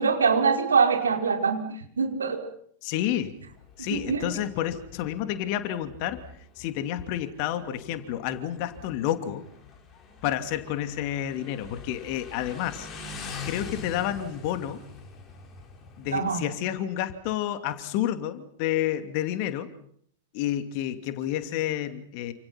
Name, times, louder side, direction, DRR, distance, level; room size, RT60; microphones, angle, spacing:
voice 1, 0.0-2.4 3.9-4.2 16.1-16.4, right 5 dB, 70° right, 3 dB, 5.1 m, -24 dB
voice 2, 2.8-3.4 3.8-6.2 6.6-9.4 10.2-12.9 13.4-14.8 16.0-19.7 20.3-22.3, left 11 dB, 45° left, 9 dB, 2.8 m, -30 dB
Motorcycle, 3.4-16.3, left 4 dB, 25° left, 5.8 m, -44 dB
29.5 x 27.5 x 5.9 m, 0.65 s
figure-of-eight pair, 90°, 0 cm